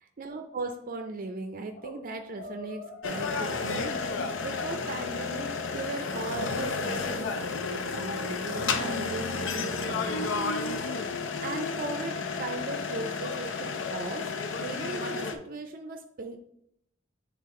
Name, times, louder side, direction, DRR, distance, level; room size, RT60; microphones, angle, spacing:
voice 1, 0.2-10.8 11.4-14.3 14.6-16.4, right 3 dB, 45° right, 5 dB, 0.5 m, -38 dB
sound 1, 1.5-2.0 2.3-5.1, left 2 dB, 55° left, 1.8 m, -45 dB
sound 2, 3.0-15.3, left 4 dB, 85° left, 0.6 m, -32 dB
7.6 x 3.5 x 3.6 m, 0.75 s
head